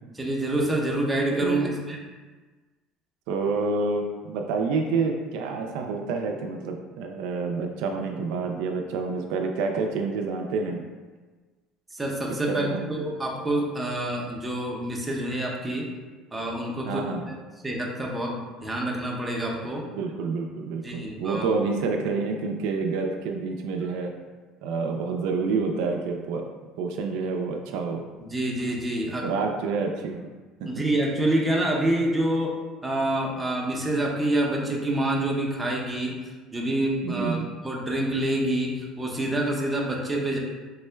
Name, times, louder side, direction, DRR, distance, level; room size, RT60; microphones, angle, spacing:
voice 1, 0.2-2.0 11.9-15.9 16.3-17.4 17.6-19.8 20.8-21.5 28.3-29.4 30.6-36.1 36.5-37.4 37.6-40.4, right 1 dB, 10° right, -2 dB, 0.6 m, -27 dB
voice 2, 1.3-1.7 3.3-10.8 12.5-13.0 16.9-17.3 19.9-24.1 24.6-26.4 26.8-28.1 29.2-30.3 30.6-30.7 37.0-37.5, right 4 dB, 80° right, 3 dB, 0.3 m, -28 dB
3.6 x 2.1 x 3.2 m, 1.3 s
cardioid pair, 115°, 0 cm